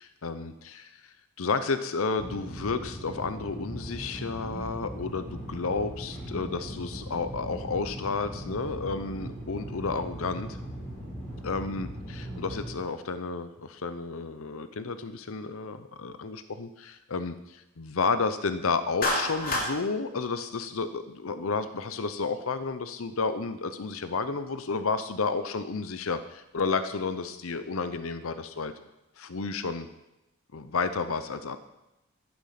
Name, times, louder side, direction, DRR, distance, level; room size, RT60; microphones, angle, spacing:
voice 1, 0.2-10.6 11.4-11.9 12.1-28.7 29.2-29.9 30.5-31.6, left 4 dB, 65° left, 11 dB, 0.7 m, -31 dB
sound 1, 2.2-12.7, equal, 10° left, 4.2 m, -39 dB
Clapping, 19.0-19.7, left 1 dB, 40° left, 2.8 m, -27 dB
11.5 x 10.5 x 5.9 m, 0.94 s
head